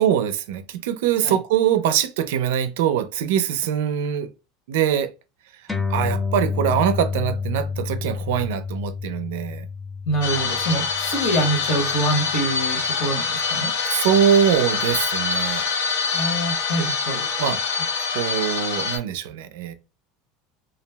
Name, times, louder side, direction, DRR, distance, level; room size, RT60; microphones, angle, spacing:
voice 1, 0.0-4.3 4.7-5.1 5.9-9.7 13.9-15.6 17.4-17.6 18.1-19.7, right 9 dB, 80° right, 0.4 m, -22 dB
sound 1, 5.7-12.5, left 5 dB, 5° left, 0.4 m, -29 dB
voice 2, 10.0-13.7 16.1-17.3, right 1 dB, 40° left, 1.0 m, -25 dB
sound 2, 10.2-19.0, left 5 dB, 85° left, 0.9 m, -25 dB
2.3 x 2.0 x 3.2 m
supercardioid pair, 170°, 0 cm